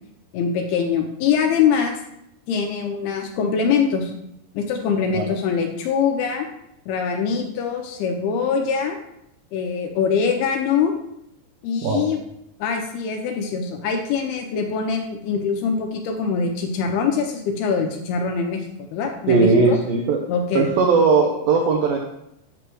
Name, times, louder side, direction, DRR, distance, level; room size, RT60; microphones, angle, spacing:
voice 1, 0.3-1.9 2.5-4.1 4.5-6.5 6.9-9.0 9.5-10.9 11.6-12.2 12.6-18.6 18.9-19.8 20.3-20.7, left 6 dB, 80° left, 3 dB, 2.4 m, -23 dB
voice 2, 19.3-20.2 20.5-22.0, right 4 dB, 85° right, 2 dB, 2.0 m, -18 dB
8.9 x 3.2 x 6.1 m, 0.81 s
omnidirectional pair, 5.0 m